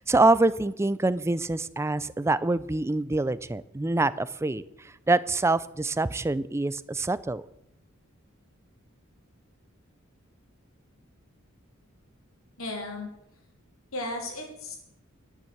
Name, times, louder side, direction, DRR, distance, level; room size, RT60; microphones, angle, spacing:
voice 1, 0.0-7.4, right 2 dB, 15° right, 17 dB, 0.4 m, -25 dB
voice 2, 12.6-13.1 13.9-14.8, left 1 dB, 80° left, 1 dB, 3.7 m, -35 dB
11.5 x 7.4 x 7.9 m, 0.83 s
head